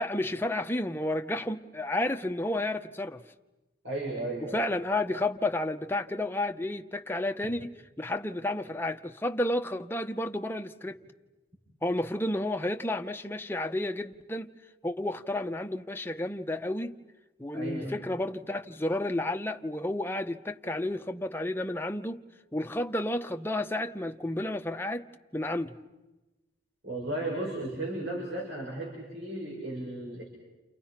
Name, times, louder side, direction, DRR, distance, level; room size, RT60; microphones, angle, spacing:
voice 1, 0.0-3.2 4.5-11.0 11.8-14.5 14.8-16.9 17.4-22.2 22.5-25.0 25.3-25.7, left 1 dB, 10° left, 0.9 m, -31 dB
voice 2, 3.8-4.7 17.5-17.9 26.8-30.2, right 1 dB, 75° right, 7.0 m, -35 dB
29.5 x 29.5 x 5.9 m
head